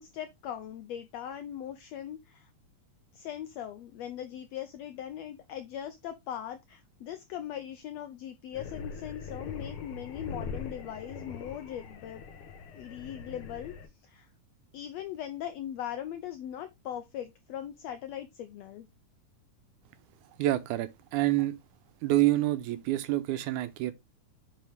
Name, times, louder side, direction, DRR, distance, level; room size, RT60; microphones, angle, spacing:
voice 1, 0.0-2.5 3.1-12.2 12.7-13.7 14.0-14.3 14.7-18.9, left 10 dB, 85° left, 1.5 m, -40 dB
sound 1, 8.5-13.9, left 5 dB, 65° left, 1.4 m, -42 dB
voice 2, 20.4-21.6 22.0-23.9, right 15 dB, 80° right, 2.1 m, -27 dB
9.2 x 4.2 x 3.4 m
omnidirectional pair, 3.7 m